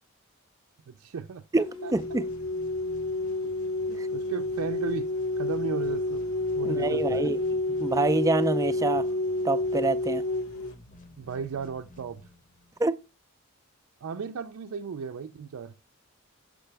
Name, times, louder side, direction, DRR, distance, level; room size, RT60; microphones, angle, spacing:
voice 1, 0.9-1.9 3.9-5.1 5.4-6.3 6.5-7.3 11.2-12.3 14.0-15.7, right 6 dB, 80° right, 0.4 m, -35 dB
sound 1, 1.6-10.7, left 2 dB, 80° left, 1.2 m, -29 dB
sound 2, 1.9-12.9, left 1 dB, 35° left, 0.8 m, -51 dB
voice 2, 1.9-2.3 4.0-4.1 6.6-7.4 7.8-9.1 9.4-10.2 12.8-12.9, right 2 dB, 15° right, 0.3 m, -26 dB
6.8 x 6.4 x 3.3 m
head